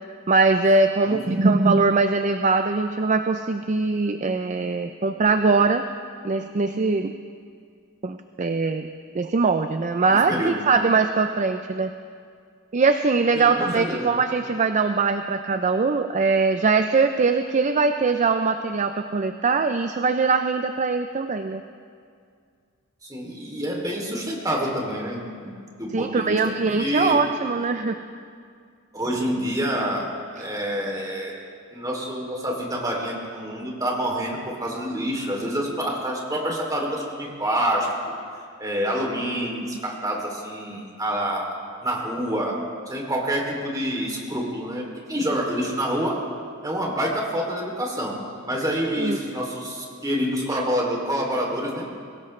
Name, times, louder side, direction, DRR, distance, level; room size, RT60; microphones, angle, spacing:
voice 1, 0.3-5.8 6.2-7.1 8.0-8.9 9.1-11.9 12.7-21.6 25.9-28.0 49.0-49.2 50.5-50.6, right 4 dB, 35° right, 8 dB, 0.5 m, -21 dB
voice 2, 1.0-1.5 10.1-10.6 13.3-14.1 23.0-25.5 25.8-26.4 26.8-27.2 28.9-30.1 30.3-31.3 31.7-38.1 38.6-41.5 41.8-42.5 42.9-46.2 46.6-48.2 48.4-51.8, equal, 15° right, -1 dB, 2.9 m, -27 dB
22.5 x 17.5 x 3.2 m, 2.2 s
head